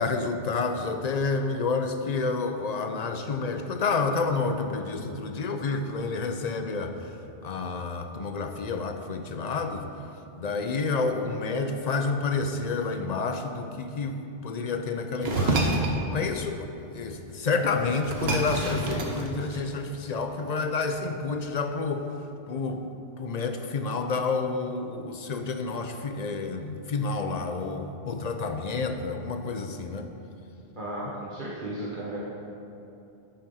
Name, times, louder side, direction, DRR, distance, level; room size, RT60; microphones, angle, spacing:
voice 1, 0.0-7.1 7.4-9.9 10.3-15.7 16.1-22.1 22.5-22.8 23.2-30.1 31.1-31.2, left 4 dB, 50° left, 6 dB, 0.6 m, -29 dB
sound 1, 15.2-16.0 17.4-17.5 17.8-19.9, right 2 dB, 70° right, 1.2 m, -28 dB
voice 2, 30.7-32.2, right 1 dB, 50° right, -7 dB, 1.2 m, -35 dB
10.0 x 5.1 x 5.5 m, 2.8 s
omnidirectional pair, 1.1 m